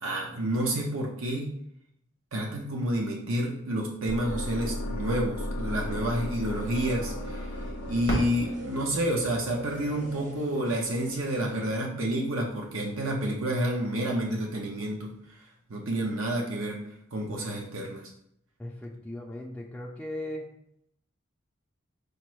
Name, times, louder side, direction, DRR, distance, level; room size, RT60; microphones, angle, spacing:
voice 1, 0.0-1.5 2.3-7.5 7.9-15.1 15.7-16.8 17.1-18.1, right 1 dB, 80° right, -1 dB, 0.7 m, -29 dB
sound 1, 4.1-10.1, left 1 dB, 70° left, 0.5 m, -36 dB
sound 2, 5.6-11.8, right 1 dB, 35° right, 0.6 m, -45 dB
Fireworks, 8.0-10.8 11.5-11.6 12.3-12.7 14.6-14.7, equal, 65° right, 1.4 m, -37 dB
voice 2, 18.6-20.5, left 1 dB, 5° left, -3 dB, 0.3 m, -38 dB
5.1 x 2.0 x 4.5 m, 0.74 s
head